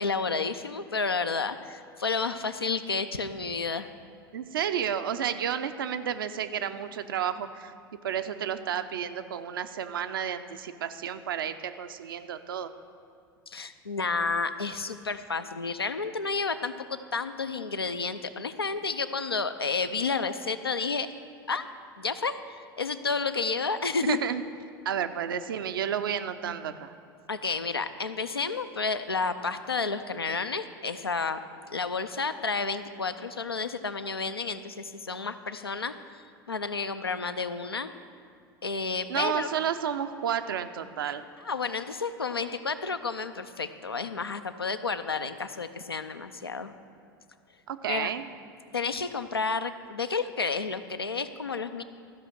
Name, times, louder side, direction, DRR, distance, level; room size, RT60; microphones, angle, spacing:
voice 1, 0.0-3.9 13.5-21.1 21.5-21.6 22.0-24.2 27.3-31.4 31.7-37.9 38.6-39.5 41.0-46.7 47.9-48.1 48.7-51.8, left 4 dB, 85° left, 10 dB, 0.5 m, -31 dB
voice 2, 4.3-7.7 8.0-12.7 24.0-24.4 24.8-26.9 39.1-41.3 47.7-48.2, right 8 dB, 65° right, 9 dB, 0.6 m, -31 dB
13.5 x 5.6 x 6.1 m, 2.3 s
figure-of-eight pair, 80°, 12 cm